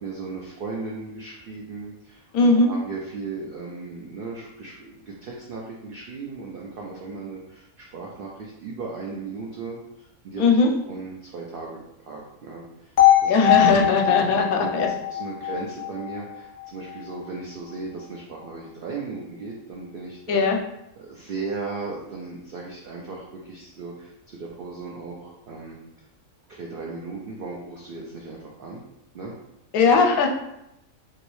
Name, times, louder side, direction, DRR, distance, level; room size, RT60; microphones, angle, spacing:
voice 1, 0.0-10.6 10.8-13.4 14.0-14.7 15.1-20.4 21.0-25.8 26.5-28.8 29.1-29.3, right 4 dB, 80° right, -2 dB, 0.4 m, -36 dB
voice 2, 2.3-2.7 10.4-10.7 13.2-14.9 20.3-20.6 29.7-30.3, left 3 dB, 80° left, 3 dB, 1.0 m, -19 dB
sound 1, 13.0-17.0, left 13 dB, 60° left, 0.7 m, -21 dB
3.0 x 2.7 x 3.0 m, 0.84 s
omnidirectional pair, 1.5 m